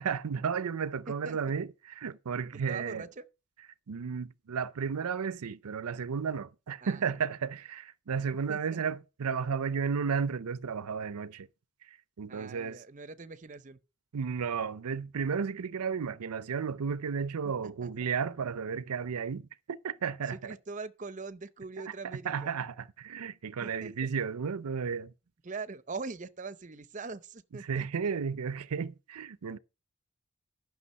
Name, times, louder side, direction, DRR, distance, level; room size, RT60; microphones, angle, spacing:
voice 1, 0.0-3.1 3.9-11.5 11.8-12.8 14.1-20.6 21.9-25.1 27.6-29.6, right 6 dB, 90° right, 0.5 m, -33 dB
voice 2, 2.7-3.2 6.8-7.0 8.5-8.8 12.3-13.8 17.8-17.9 20.3-22.5 23.6-23.9 25.4-27.9, right 4 dB, 35° right, 0.6 m, -42 dB
11.0 x 6.1 x 5.3 m
head